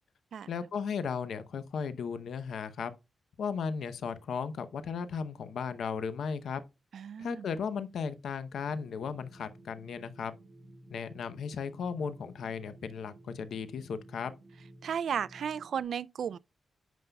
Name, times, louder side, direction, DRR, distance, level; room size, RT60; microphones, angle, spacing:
voice 1, 0.5-2.9 3.4-6.6 7.2-10.3 10.9-14.3, left 6 dB, 85° left, 0.7 m, -36 dB
voice 2, 6.9-7.5 14.8-16.4, right 8 dB, 75° right, 0.3 m, -34 dB
sound 1, 8.7-15.8, right 1 dB, 15° right, 1.5 m, -54 dB
9.2 x 5.4 x 2.2 m
wide cardioid pair, 130°, 0 cm